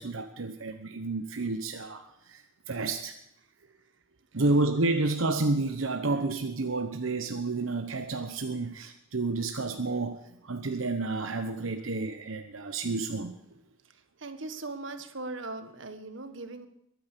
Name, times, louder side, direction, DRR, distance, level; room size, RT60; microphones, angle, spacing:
voice 1, 0.0-3.1 4.3-13.3, right 3 dB, 90° right, 6 dB, 1.1 m, -30 dB
voice 2, 14.2-16.7, right 2 dB, 70° right, 9 dB, 1.6 m, -39 dB
22.5 x 9.5 x 6.8 m, 0.78 s
head